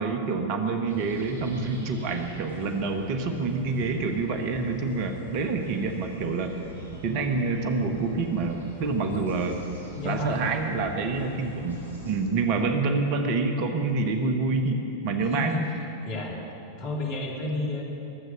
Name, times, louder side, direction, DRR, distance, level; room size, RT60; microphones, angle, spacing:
voice 1, 0.0-6.5 7.0-9.6 10.0-15.6, right 3 dB, 45° right, 5 dB, 1.2 m, -27 dB
sound 1, 0.8-12.2, right 1 dB, 85° left, 4.4 m, -43 dB
voice 2, 10.0-10.4 15.2-15.7 16.0-16.4 16.8-17.8, left 2 dB, 45° left, -1 dB, 3.0 m, -31 dB
22.5 x 8.0 x 6.3 m, 2.8 s
figure-of-eight pair, 90°, 0 cm